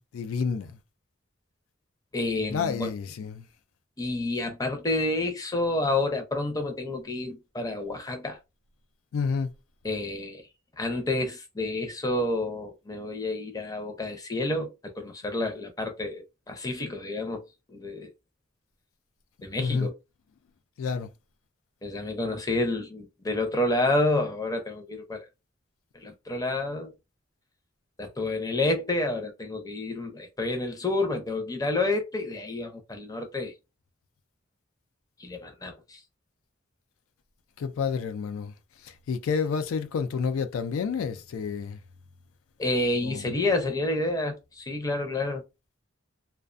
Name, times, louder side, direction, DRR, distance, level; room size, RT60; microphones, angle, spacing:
voice 1, 0.1-0.8 2.5-3.5 9.1-9.5 19.6-19.9 20.8-21.1 37.6-38.5 38.8-41.8 43.0-43.3, left 5 dB, 90° left, 0.3 m, -29 dB
voice 2, 2.1-2.9 4.0-8.4 9.8-10.4 10.8-17.4 17.7-18.1 19.4-19.9 21.8-25.2 25.9-26.9 28.0-33.5 35.2-36.0 42.6-45.4, left 2 dB, 20° left, 0.5 m, -29 dB
2.4 x 2.2 x 2.4 m
head